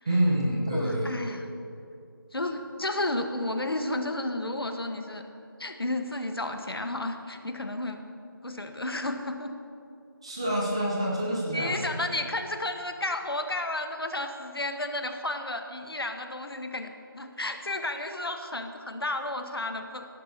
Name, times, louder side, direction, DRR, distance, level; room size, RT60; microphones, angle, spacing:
voice 1, 0.0-1.4 10.2-12.0, right 1 dB, 15° right, -4 dB, 0.9 m, -27 dB
voice 2, 0.7-1.4 2.3-5.2 5.6-8.0 8.4-9.5 11.5-20.1, left 2 dB, 85° left, 6 dB, 1.3 m, -32 dB
18.0 x 11.0 x 2.9 m, 2.6 s
figure-of-eight pair, 175°, 12 cm